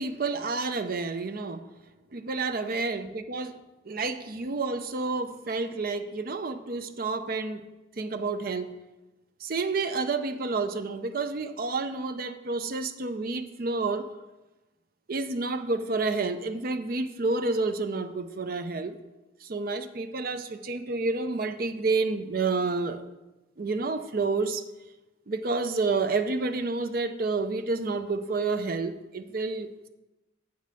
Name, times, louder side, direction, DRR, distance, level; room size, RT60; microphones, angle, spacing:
voice 1, 0.0-1.6 2.1-3.6 3.9-7.7 8.0-8.7 9.4-14.1 15.1-19.0 19.4-23.0 23.6-24.6 25.3-29.9, right 3 dB, 50° right, 9 dB, 0.5 m, -29 dB
7.9 x 5.1 x 6.7 m, 1.1 s
head